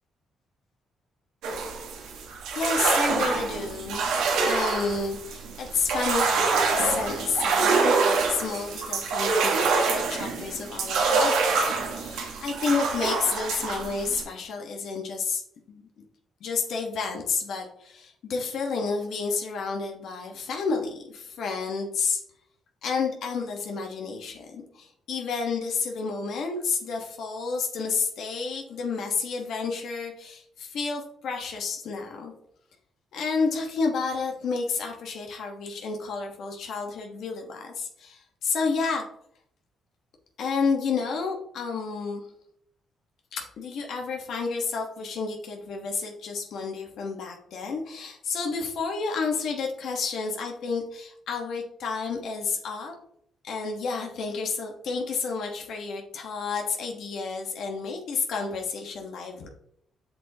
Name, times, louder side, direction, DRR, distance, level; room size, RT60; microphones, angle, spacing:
sound 1, 1.4-14.2, right 4 dB, 90° right, 1.4 m, -26 dB
voice 1, 2.5-15.9 16.4-22.2 22.8-32.3 33.1-39.0 40.4-42.2 43.3-52.9 53.4-59.5, left 4 dB, 70° left, 2 dB, 1.2 m, -30 dB
7.3 x 5.8 x 2.8 m, 0.68 s
cardioid pair, 90°, 0 cm